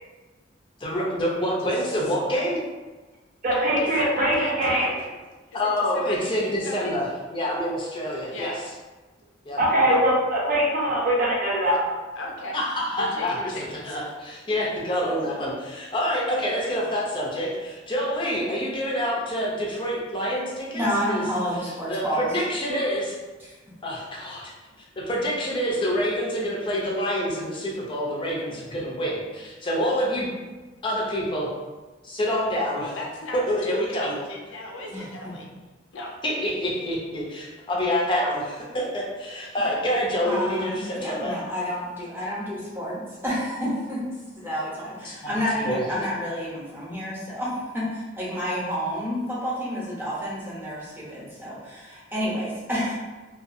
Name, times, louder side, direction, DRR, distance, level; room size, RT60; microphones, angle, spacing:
voice 1, 0.8-2.6 5.5-8.6 9.5-9.6 12.5-13.4 13.8-20.8 21.1-21.2 21.9-23.1 23.8-24.5 25.0-30.3 30.8-31.5 32.0-32.8 33.3-34.1 36.2-41.3 45.0-46.0, equal, 25° left, -4 dB, 0.5 m, -27 dB
voice 2, 1.6-2.1 3.5-4.9 5.5-6.9 8.3-8.5 9.9-10.0 12.2-12.6 13.0-14.0 14.8-15.1 32.8-35.5 35.9-36.1, left 2 dB, 85° left, -1 dB, 0.5 m, -37 dB
voice 3, 3.4-4.9 9.6-11.9, right 1 dB, 45° right, -4 dB, 0.6 m, -22 dB
voice 4, 20.7-22.3 23.4-23.5 34.9-35.0 39.6-39.7 40.3-44.0 44.4-52.9, equal, 10° right, -8 dB, 0.8 m, -29 dB
2.5 x 2.3 x 2.5 m, 1.2 s
head